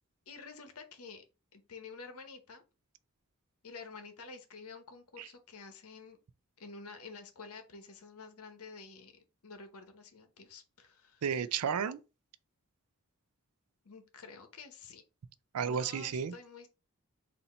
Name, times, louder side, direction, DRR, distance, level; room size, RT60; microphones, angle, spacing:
voice 1, 0.3-1.2 1.5-2.6 3.6-6.2 6.6-11.2 13.8-15.0 15.6-16.7, left 4 dB, 75° left, 0.9 m, -50 dB
voice 2, 11.2-12.0 15.5-16.3, right 7 dB, 85° right, 0.4 m, -32 dB
4.1 x 2.6 x 4.2 m
head